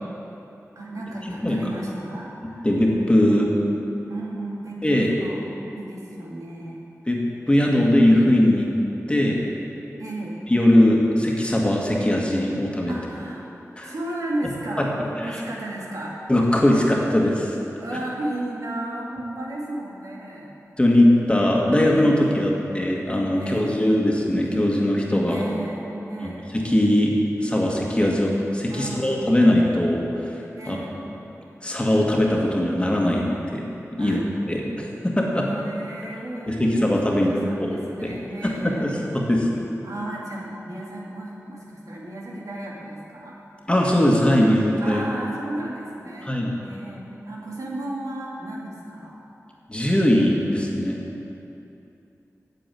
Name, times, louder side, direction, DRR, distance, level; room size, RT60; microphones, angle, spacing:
voice 1, 0.8-2.7 3.2-3.7 4.1-5.4 5.7-6.9 7.6-8.0 10.0-10.4 12.9-13.4 13.8-16.1 17.8-20.6 21.8-22.7 23.3-23.9 25.3-26.5 28.7-29.4 30.6-31.0 33.9-34.2 35.5-39.1 39.8-43.4 44.8-46.3 46.6-49.2, right 1 dB, 80° right, -4 dB, 2.3 m, -34 dB
voice 2, 2.6-3.5 4.8-5.1 7.1-7.2 7.5-8.7 9.1-9.4 10.5-12.9 13.8-13.9 14.8-14.9 15.2-15.4 16.3-17.6 20.8-25.5 26.2-30.8 31.6-33.2 33.5-33.6 34.0-34.2 34.5-35.5 36.5-37.3 37.6-38.2 38.4-39.5 43.7-45.0 46.2-46.6 49.7-51.0, left 1 dB, 20° left, -2 dB, 1.9 m, -20 dB
8.9 x 7.7 x 9.2 m, 2.9 s
wide cardioid pair, 70°, 6 cm